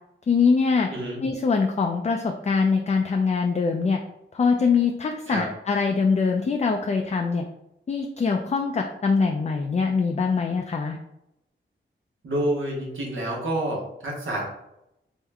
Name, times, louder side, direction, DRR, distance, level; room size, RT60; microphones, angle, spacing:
voice 1, 0.3-0.9 1.2-4.0 4.3-7.4 7.9-11.0, left 5 dB, 35° left, 3 dB, 0.4 m, -23 dB
voice 2, 12.2-14.5, right 1 dB, 75° right, -3 dB, 1.0 m, -28 dB
3.5 x 2.1 x 3.4 m, 0.84 s
cardioid pair, 60°, 21 cm